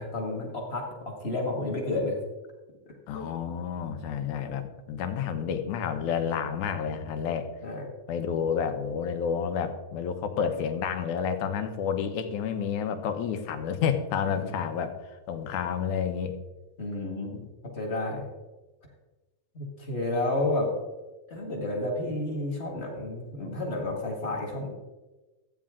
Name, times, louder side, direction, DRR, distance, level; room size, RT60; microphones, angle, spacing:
voice 1, 0.0-2.2 3.1-3.2 7.6-7.9 14.4-14.5 16.8-17.3 17.6-18.3 19.5-20.7 21.3-24.7, left 2 dB, 30° left, 0 dB, 1.4 m, -31 dB
voice 2, 3.1-7.5 8.1-16.3 17.3-17.5, left 7 dB, 80° left, 7 dB, 2.3 m, -30 dB
14.0 x 8.9 x 3.7 m, 1.2 s
omnidirectional pair, 3.4 m